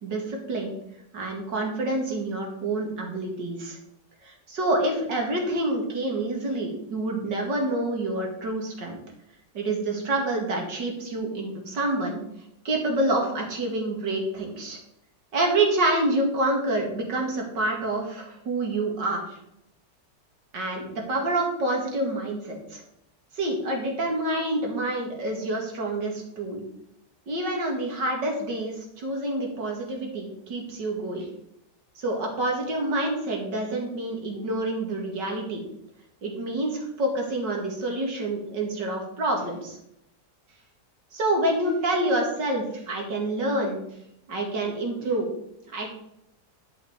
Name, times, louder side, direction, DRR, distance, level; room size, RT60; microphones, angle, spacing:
voice 1, 0.0-0.7 1.1-3.8 4.2-9.0 9.5-12.2 12.6-14.8 15.3-19.4 20.5-22.8 23.3-26.6 27.3-31.3 32.0-35.6 36.2-39.8 41.1-43.8 44.3-45.3 45.7-45.9, right 2 dB, 85° right, 1 dB, 2.8 m, -27 dB
11.5 x 5.7 x 5.2 m, 0.77 s
omnidirectional pair, 1.9 m